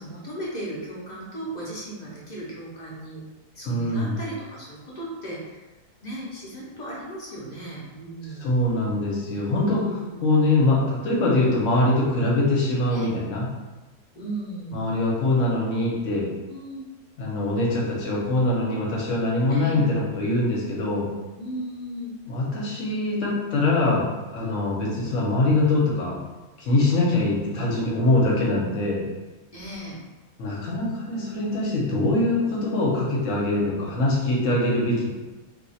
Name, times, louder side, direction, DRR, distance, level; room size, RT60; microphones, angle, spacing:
voice 1, 0.0-3.2 3.5-5.7 6.0-8.5 9.6-10.2 12.9-13.1 14.1-14.9 16.5-16.8 19.5-19.8 21.4-22.1 29.5-30.0, right 1 dB, 40° left, -6 dB, 0.7 m, -36 dB
voice 2, 3.6-4.2 8.4-9.8 10.2-13.5 14.7-16.3 17.2-21.1 22.3-26.2 26.6-29.0 30.4-35.1, left 2 dB, 60° left, -3 dB, 1.1 m, -23 dB
2.7 x 2.3 x 4.1 m, 1.1 s
omnidirectional pair, 1.6 m